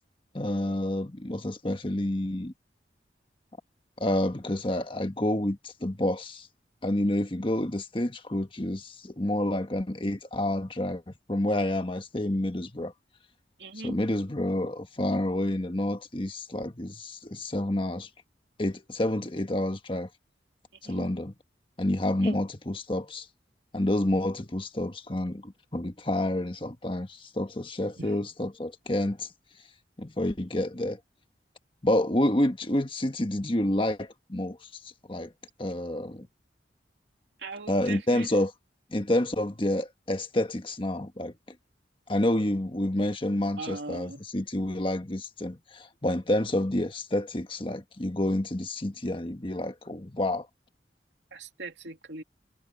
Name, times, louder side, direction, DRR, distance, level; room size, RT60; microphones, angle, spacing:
voice 1, 0.3-2.5 4.0-6.5 6.8-12.9 13.8-18.1 18.6-20.1 20.8-21.3 21.8-23.3 23.7-29.3 30.0-31.0 31.8-34.6 35.1-35.3 35.6-36.3 37.7-38.5 38.9-41.3 42.1-50.5, left 1 dB, 30° left, 1.4 m, -29 dB
voice 2, 13.6-14.0 20.8-21.1 22.1-22.4 28.0-28.2 37.4-38.3 43.6-44.2 51.3-52.2, right 3 dB, 80° right, 2.9 m, -40 dB
head